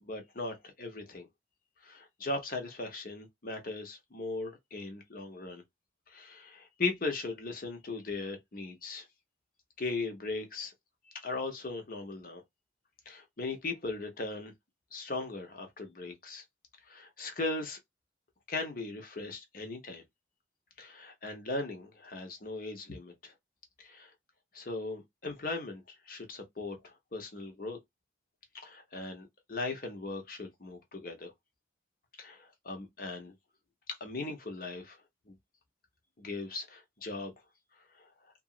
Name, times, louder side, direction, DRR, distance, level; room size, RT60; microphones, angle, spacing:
voice 1, 0.0-1.3 1.8-5.6 6.1-9.0 9.8-10.7 11.1-12.4 13.1-14.5 14.9-16.4 16.9-17.8 18.5-20.0 20.8-23.3 23.8-24.1 24.5-27.8 28.6-31.3 32.2-33.3 33.9-35.0 35.3-35.4 36.2-37.3, left 3 dB, 45° left, 0.9 m, -38 dB
2.9 x 2.5 x 2.4 m
head